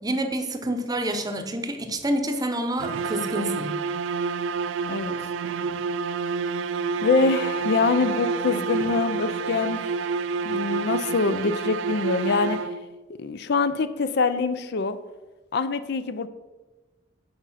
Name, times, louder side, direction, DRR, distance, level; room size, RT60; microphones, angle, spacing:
voice 1, 0.0-3.8, right 1 dB, 20° right, 6 dB, 0.7 m, -28 dB
sound 1, 2.8-13.0, right 4 dB, 70° right, 0.3 m, -28 dB
voice 2, 7.0-9.8 10.4-12.6 13.2-15.0 15.5-16.3, left 4 dB, 60° left, 12 dB, 0.5 m, -24 dB
8.7 x 5.3 x 5.6 m, 1.2 s
head